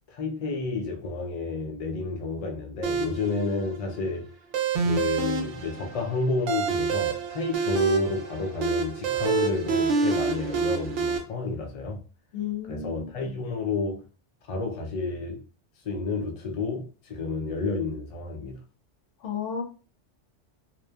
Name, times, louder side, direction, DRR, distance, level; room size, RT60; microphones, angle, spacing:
voice 1, 0.1-4.3 4.8-12.0 12.7-14.0 14.5-15.4 15.8-18.6, left 3 dB, 60° left, 0.3 m, -30 dB
sound 1, 2.8-11.2, right 5 dB, 75° right, 0.9 m, -28 dB
voice 2, 12.3-13.4 19.2-19.6, left 7 dB, 75° left, 0.9 m, -33 dB
2.9 x 2.1 x 2.2 m
omnidirectional pair, 1.2 m